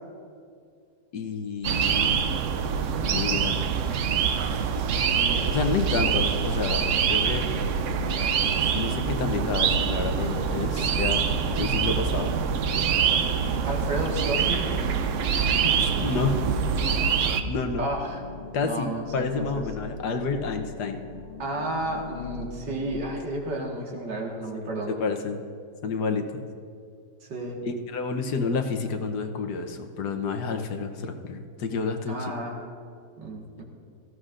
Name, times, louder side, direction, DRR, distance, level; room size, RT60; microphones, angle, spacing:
voice 1, 1.1-2.2 3.1-3.6 5.5-7.4 8.7-11.2 11.6-12.3 15.8-16.4 17.5-17.8 18.5-21.0 24.6-24.7 25.0-25.4 25.8-26.4 27.7-32.3, left 4 dB, 70° left, 6 dB, 1.5 m, -29 dB
sound 1, 1.6-17.4, right 7 dB, 65° right, 0.8 m, -25 dB
voice 2, 4.9-5.6 13.7-14.7 17.8-18.2 18.5-19.6 21.4-24.9 27.3-27.6 32.1-32.6 33.2-33.6, right 1 dB, 85° right, -1 dB, 2.4 m, -32 dB
sound 2, 7.4-22.9, left 3 dB, 45° left, 1.3 m, -41 dB
17.5 x 14.5 x 2.5 m, 2.3 s
omnidirectional pair, 1.9 m